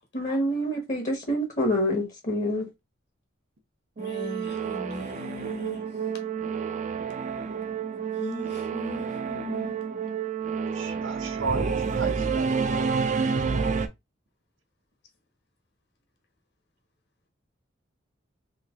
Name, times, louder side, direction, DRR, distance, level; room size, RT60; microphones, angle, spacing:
voice 1, 0.1-2.7, equal, 40° left, 0.9 m, -27 dB
voice 2, 4.0-5.8 8.2-9.8, left 1 dB, 60° left, 1.2 m, -38 dB
Singing / Musical instrument, 4.0-13.9, right 5 dB, 40° right, 0.4 m, -29 dB
voice 3, 10.7-12.9 13.2-13.3, right 3 dB, 85° right, 0.9 m, -34 dB
3.2 x 2.7 x 3.6 m
head